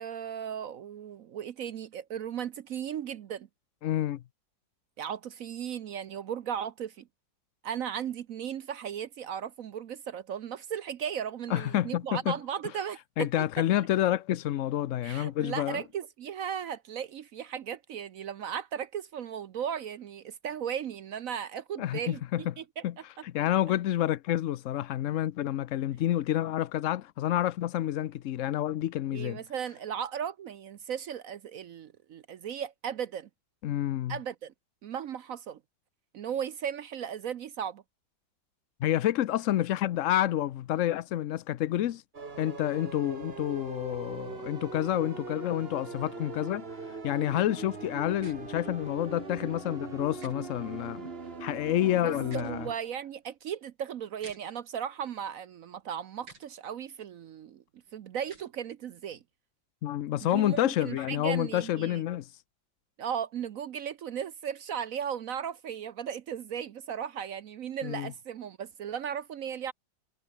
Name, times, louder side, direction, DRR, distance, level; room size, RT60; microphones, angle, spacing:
voice 1, 0.0-3.5 5.0-7.1 7.6-13.6 15.0-22.8 29.1-33.3 34.1-34.5 34.8-35.6 36.1-37.8 51.9-57.6 57.9-59.2 60.2-62.0 63.0-69.7, right 8 dB, 60° right, 0.9 m, -36 dB
voice 2, 3.8-4.2 11.5-12.4 13.2-15.8 21.8-22.4 22.8-22.9 23.2-29.4 33.6-34.2 38.8-42.0 42.4-46.6 47.0-51.1 51.4-52.7 59.8-62.3 67.8-68.1, left 12 dB, 90° left, 0.6 m, -29 dB
sound 1, 42.1-52.7, right 4 dB, 30° right, 1.9 m, -41 dB
sound 2, 48.2-48.4 50.2-50.3 52.2-52.5 54.2-54.4 56.2-56.5 58.2-58.5, right 3 dB, 80° right, 6.5 m, -50 dB
omnidirectional pair, 2.1 m